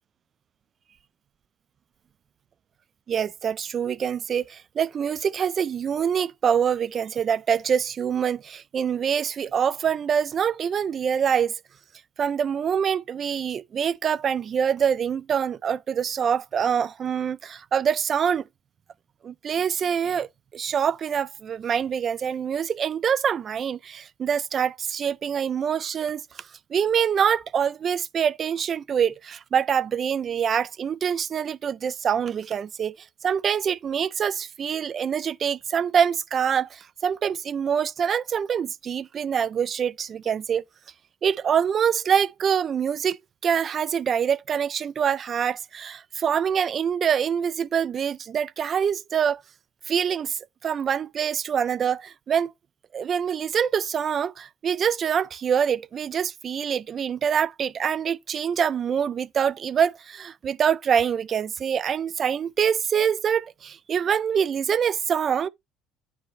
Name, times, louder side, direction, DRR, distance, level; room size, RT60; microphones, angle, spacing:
voice 1, 3.1-11.5 12.2-18.4 19.2-20.3 20.5-26.2 26.7-33.0 33.2-40.6 41.2-43.2 43.4-49.4 49.9-52.5 52.9-65.5, right 7 dB, 40° right, 0.3 m, -25 dB
9.3 x 4.0 x 2.5 m
supercardioid pair, 95°, 0 cm